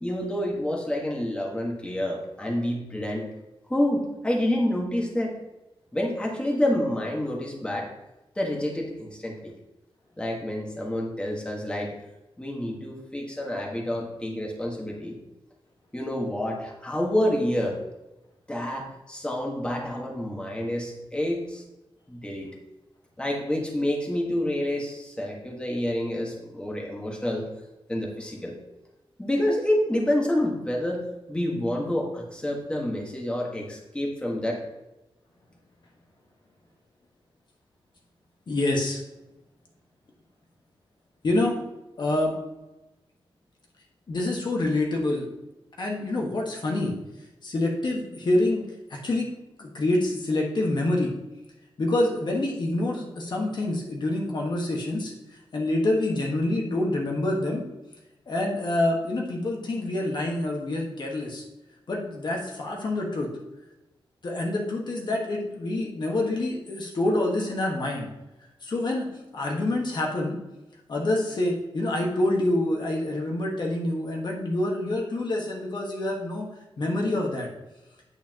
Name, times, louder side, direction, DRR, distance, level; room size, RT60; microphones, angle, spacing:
voice 1, 0.0-3.3 3.7-5.3 5.9-7.9 8.3-9.5 10.2-11.9 12.4-15.1 15.9-17.8 18.5-21.6 22.1-22.5 23.2-27.5 27.9-28.6 29.2-34.6, left 1 dB, 10° left, -2 dB, 1.6 m, -28 dB
voice 2, 38.5-39.0 41.2-41.6 42.0-42.3 44.1-45.3 45.8-46.9 47.4-48.6 48.9-49.3 49.6-51.1 51.8-55.1 55.5-57.6 58.3-61.4 61.9-63.3 64.2-68.1 68.6-70.4 70.9-76.5 76.8-77.5, left 1 dB, 50° left, -1 dB, 1.5 m, -26 dB
9.1 x 8.5 x 3.0 m, 0.99 s
wide cardioid pair, 150°, 9 cm